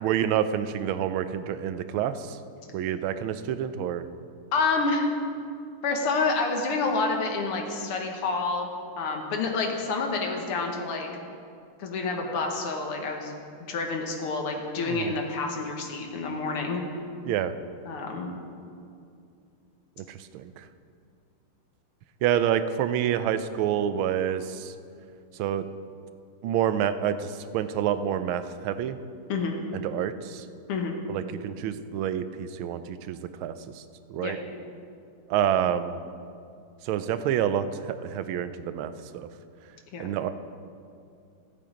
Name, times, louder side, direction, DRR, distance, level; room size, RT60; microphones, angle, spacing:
voice 1, 0.0-2.4 2.7-4.0 14.9-15.1 17.3-17.5 20.0-20.6 22.2-24.7 25.4-25.6 26.4-29.0 29.7-30.4 31.1-33.8 34.1-34.4 35.3-36.0 36.8-39.3 40.0-40.3, right 9 dB, 75° right, 12 dB, 1.4 m, -28 dB
voice 2, 4.5-5.1 5.8-8.7 9.0-11.1 11.8-16.8 17.8-18.3 29.3-29.6 30.7-31.0 34.2-34.4 39.9-40.1, left 3 dB, 90° left, 2 dB, 2.2 m, -28 dB
16.0 x 7.7 x 5.1 m, 2.5 s
omnidirectional pair, 2.4 m